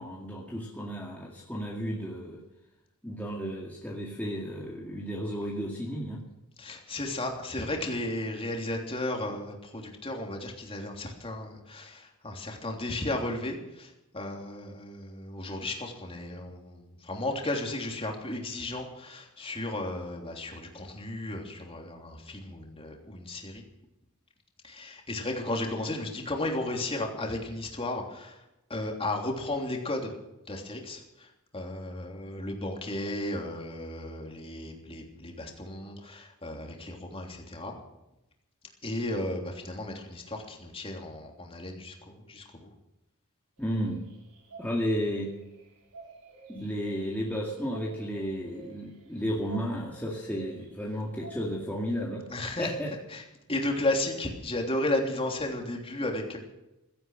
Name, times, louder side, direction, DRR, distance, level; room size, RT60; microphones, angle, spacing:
voice 1, 0.0-2.4 3.0-6.2 43.6-44.0 44.6-45.3 46.5-52.2 52.6-52.9, equal, 10° left, -3 dB, 2.1 m, -33 dB
voice 2, 6.6-23.6 24.6-28.4 28.7-30.1 30.5-31.3 31.5-37.7 38.8-42.7 52.3-52.7 53.1-53.2 53.5-56.4, left 1 dB, 25° left, 1 dB, 3.2 m, -34 dB
sound 1, 43.6-50.9 51.2-52.1, right 3 dB, 80° right, 4.7 m, -51 dB
16.5 x 13.0 x 6.5 m, 0.93 s
head